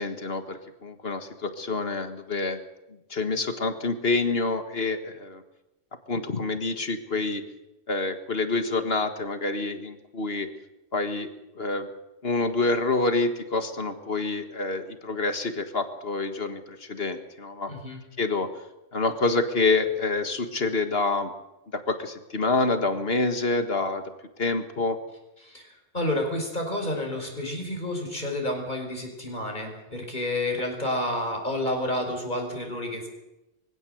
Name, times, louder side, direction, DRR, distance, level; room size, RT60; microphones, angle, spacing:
voice 1, 0.0-2.6 3.1-5.4 6.1-7.4 7.9-10.5 10.9-11.3 11.6-11.9 12.2-17.7 18.2-18.5 18.9-21.3 21.7-24.0 24.4-25.0, left 3 dB, 55° left, 8 dB, 1.9 m, -27 dB
voice 2, 17.7-18.0 25.4-33.1, left 1 dB, 40° left, 2 dB, 5.2 m, -30 dB
23.5 x 16.0 x 7.9 m, 0.98 s
omnidirectional pair, 1.2 m